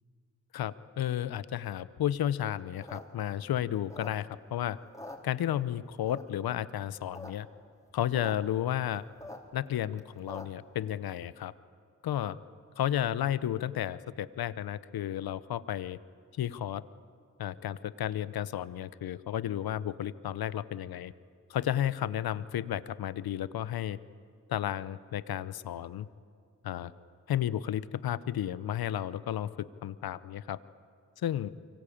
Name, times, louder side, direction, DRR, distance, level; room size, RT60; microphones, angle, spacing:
voice 1, 0.5-4.8 5.2-7.5 7.9-9.0 9.5-11.5 12.0-12.4 12.8-16.0 16.4-16.8 17.4-21.1 21.5-24.0 24.5-26.1 26.6-26.9 27.3-30.6 31.2-31.5, left 11 dB, 80° left, 16 dB, 0.9 m, -32 dB
sound 1, 2.7-4.5 4.8-5.7 6.1-6.5 6.9-7.3 7.6-7.7 7.8-8.3 8.7-10.7, left 1 dB, 10° left, 4.6 m, -45 dB
26.0 x 24.0 x 8.6 m, 2.1 s
supercardioid pair, 40°, 36 cm